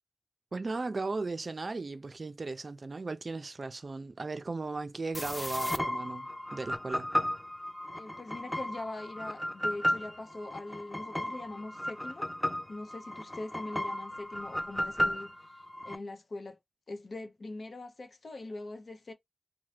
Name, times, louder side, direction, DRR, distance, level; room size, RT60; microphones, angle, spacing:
voice 1, 0.5-7.1, right 3 dB, 60° right, 0.4 m, -36 dB
sound 1, 5.1-16.0, equal, 15° left, 0.4 m, -34 dB
voice 2, 8.0-12.3 12.7-15.3 15.8-16.6 16.9-19.1, left 2 dB, 70° left, 0.7 m, -42 dB
2.8 x 2.1 x 3.2 m
cardioid pair, 50°, 0 cm